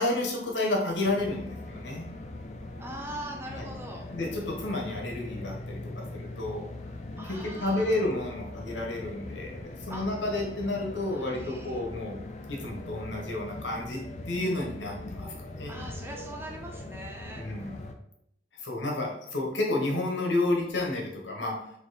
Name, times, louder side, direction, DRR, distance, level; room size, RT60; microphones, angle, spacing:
voice 1, 0.0-2.0 3.5-3.7 4.1-6.7 7.2-12.2 12.5-15.8 17.3-17.8 18.5-21.7, left 2 dB, 85° left, 0 dB, 1.1 m, -31 dB
sound 1, 1.0-17.9, left 2 dB, 40° left, 0.4 m, -41 dB
voice 2, 2.8-4.0 7.2-8.0 9.9-10.1 11.1-11.8 15.7-17.4, right 1 dB, 15° right, 1 dB, 0.7 m, -41 dB
4.2 x 2.9 x 4.1 m, 0.75 s
head